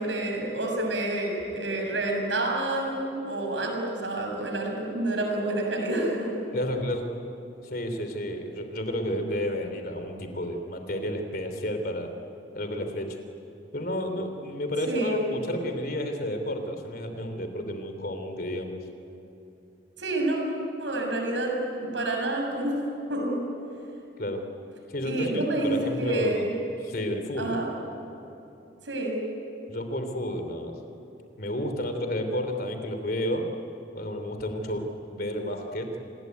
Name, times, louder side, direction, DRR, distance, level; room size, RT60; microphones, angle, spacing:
voice 1, 0.0-6.3 14.9-15.3 20.0-20.4 20.8-21.5 21.8-22.8 23.1-23.4 25.0-26.5 27.4-27.7 28.9-29.2, right 1 dB, 75° right, 1 dB, 7.1 m, -28 dB
voice 2, 6.5-7.1 7.6-12.1 12.5-13.2 13.7-18.8 24.2-24.5 24.9-26.5 26.8-27.6 29.7-30.7 31.4-33.5 33.9-35.9, equal, 50° left, 6 dB, 3.2 m, -31 dB
27.5 x 20.5 x 9.5 m, 3.0 s
head